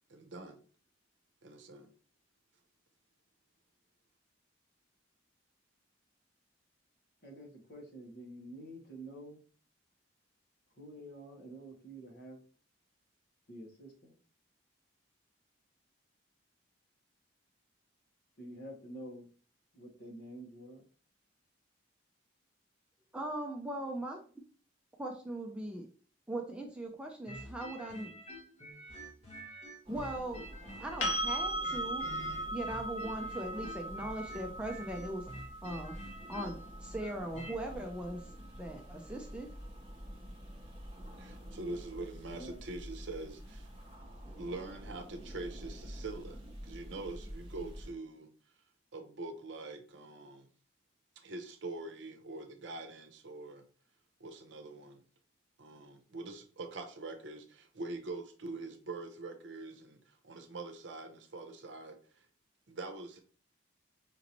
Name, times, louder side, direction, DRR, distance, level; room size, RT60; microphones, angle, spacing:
voice 1, 0.1-0.6 1.4-1.9 41.2-43.7 44.4-48.3 48.9-50.5 51.2-53.6 54.2-55.0 55.6-62.3 62.7-63.2, right 2 dB, 65° right, 5 dB, 0.7 m, -44 dB
voice 2, 7.2-9.4 10.7-12.4 13.5-14.1 18.4-19.3 19.7-20.8 42.3-42.6, right 1 dB, 55° left, 0 dB, 1.3 m, -48 dB
voice 3, 23.1-24.2 25.0-25.9 26.3-28.1 29.9-30.5 30.8-32.0 32.5-35.3 35.6-35.9 36.3-38.2 38.6-39.5, right 1 dB, 5° right, 1 dB, 0.5 m, -39 dB
sound 1, 27.3-31.3 31.6-37.6, equal, 30° left, 1.3 m, -48 dB
sound 2, 29.8-47.9, equal, 25° right, 0.8 m, -48 dB
sound 3, 31.0-38.8 41.6-41.7, right 1 dB, 70° left, 0.9 m, -39 dB
5.1 x 2.7 x 3.0 m, 0.41 s
head